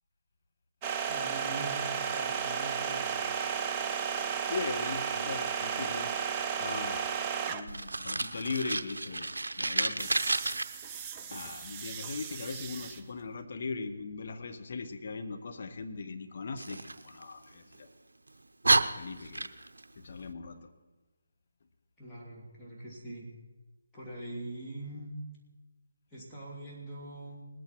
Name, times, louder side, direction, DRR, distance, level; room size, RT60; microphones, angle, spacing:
sound 1, 0.8-7.8 10.0-13.0, right 7 dB, 20° right, 0.6 m, -34 dB
voice 1, 1.1-3.1 22.0-23.3 23.9-25.1 26.1-27.5, right 1 dB, 10° left, -7 dB, 2.9 m, -42 dB
voice 2, 4.5-6.1 6.6-7.2 7.5-9.3 9.6-10.2 11.3-17.9 18.8-19.5 20.0-20.7, left 4 dB, 45° left, 7 dB, 1.1 m, -39 dB
Fire, 7.7-10.6 16.6-17.8 18.3-18.4 18.6-19.8, right 2 dB, 70° right, 0.6 m, -30 dB
20.0 x 8.8 x 4.6 m, 1.2 s
figure-of-eight pair, 150°, 0 cm